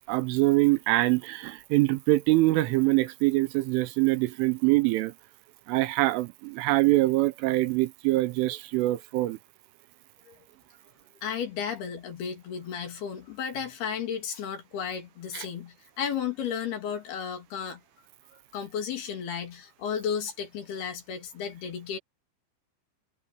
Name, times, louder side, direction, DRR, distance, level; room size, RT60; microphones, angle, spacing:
voice 1, 0.1-5.1 5.7-9.4 15.3-15.5, right 19 dB, 80° right, 3.2 m, -24 dB
voice 2, 11.2-17.8 18.5-22.0, left 7 dB, 55° left, 4.4 m, -33 dB
omnidirectional pair, 5.8 m